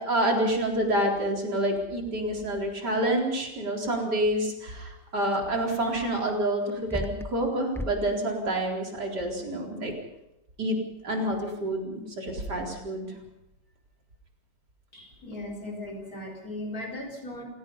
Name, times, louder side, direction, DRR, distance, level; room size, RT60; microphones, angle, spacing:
voice 1, 0.0-9.9 10.6-10.8 11.0-13.1, right 1 dB, 60° right, 0 dB, 4.8 m, -28 dB
sound 1, 5.3-5.4 6.7-7.5 7.7-7.9, left 1 dB, 5° left, 0.4 m, -35 dB
voice 2, 14.9-17.4, left 1 dB, 50° left, -1 dB, 5.1 m, -37 dB
28.5 x 17.5 x 5.6 m, 0.91 s
omnidirectional pair, 2.0 m